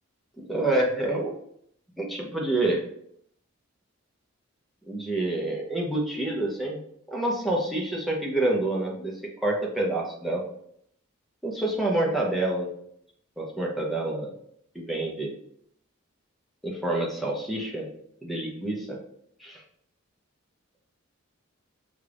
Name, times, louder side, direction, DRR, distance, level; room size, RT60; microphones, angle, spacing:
voice 1, 0.4-1.3 2.0-2.8 4.9-6.8 7.1-9.1 9.4-10.4 11.4-12.7 13.4-14.3 14.7-15.3 16.6-17.9 18.2-19.0 19.4-19.6, right 2 dB, ahead, -2 dB, 0.7 m, -27 dB
5.4 x 2.4 x 3.3 m, 0.70 s
head